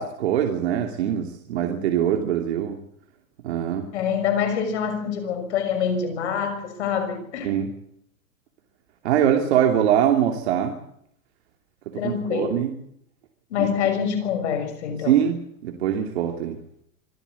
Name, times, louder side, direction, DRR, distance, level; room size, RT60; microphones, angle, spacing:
voice 1, 0.0-2.8 3.4-3.9 7.4-7.7 9.0-10.7 12.0-12.7 13.6-13.7 15.1-16.6, right 9 dB, 50° right, 4 dB, 2.9 m, -23 dB
voice 2, 3.9-7.5 12.0-12.6 13.5-15.1, left 7 dB, 55° left, 6 dB, 6.2 m, -25 dB
25.5 x 14.5 x 8.4 m, 0.70 s
supercardioid pair, 175°, 42 cm